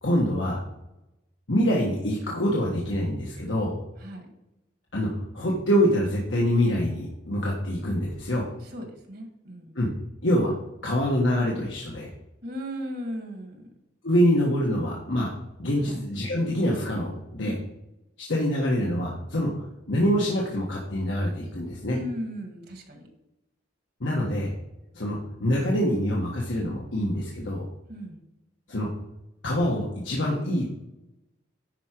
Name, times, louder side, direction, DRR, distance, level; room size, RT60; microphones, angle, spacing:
voice 1, 0.0-0.6 1.5-3.7 4.9-5.1 5.3-8.5 9.7-9.9 10.2-10.5 10.8-12.1 14.0-15.3 15.6-17.6 18.2-19.5 19.9-22.0 24.0-24.5 24.9-27.6 28.7-28.9 29.4-30.7, equal, 75° left, -3 dB, 1.5 m, -25 dB
voice 2, 8.6-9.8 12.4-13.7 15.8-16.0 17.4-17.7 21.9-23.1 27.9-28.2, equal, 55° right, 4 dB, 1.7 m, -36 dB
10.5 x 4.9 x 4.5 m, 0.92 s
head